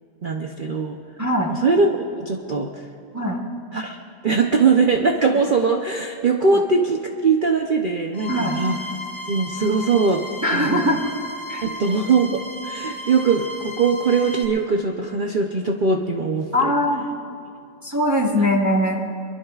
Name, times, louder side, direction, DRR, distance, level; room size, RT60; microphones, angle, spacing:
voice 1, 0.2-1.0 1.5-2.8 3.7-4.0 4.2-8.8 9.3-10.3 10.5-11.0 11.6-16.7, right 4 dB, 60° right, 3 dB, 0.5 m, -21 dB
voice 2, 1.2-1.5 3.1-3.4 8.3-8.6 10.4-11.0 11.5-11.7 16.5-17.1 17.8-19.0, left 1 dB, 10° right, -1 dB, 1.0 m, -21 dB
sound 1, 8.1-14.4, left 1 dB, 50° left, 1.8 m, -34 dB
23.5 x 22.0 x 2.4 m, 2.5 s
omnidirectional pair, 1.9 m